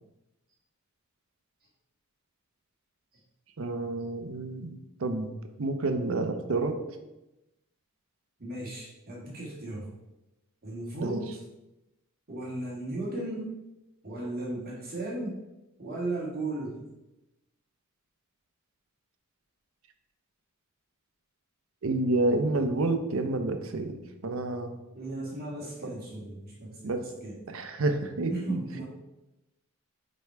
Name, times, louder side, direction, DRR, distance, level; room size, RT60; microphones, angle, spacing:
voice 1, 3.6-5.3 5.6-6.8 11.0-11.2 21.8-24.7 25.8-25.9 26.8-27.0 27.5-28.6, right 2 dB, 65° right, 7 dB, 0.7 m, -29 dB
voice 2, 8.4-9.9 10.6-11.4 12.3-13.5 14.0-15.4 15.8-16.8 24.9-26.9 27.2-27.4 28.3-28.8, right 2 dB, 45° right, -5 dB, 1.6 m, -35 dB
5.2 x 4.6 x 4.6 m, 0.97 s
head